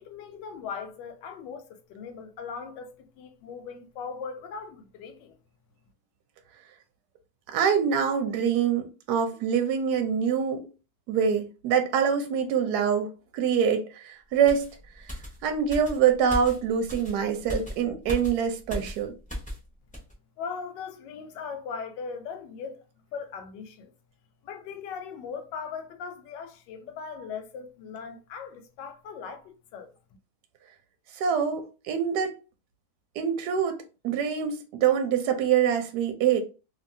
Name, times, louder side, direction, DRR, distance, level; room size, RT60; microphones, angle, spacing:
voice 1, 0.0-5.4 20.4-22.8 23.1-23.9 24.4-29.9, left 6 dB, 80° left, 1.3 m, -39 dB
voice 2, 7.5-10.7 11.1-14.7 15.4-19.1 31.1-32.3 33.2-33.8 34.0-36.4, right 7 dB, 75° right, 1.1 m, -25 dB
sound 1, 14.5-19.7 19.9-20.1, equal, 5° left, 0.6 m, -37 dB
2.7 x 2.7 x 2.5 m
omnidirectional pair, 1.9 m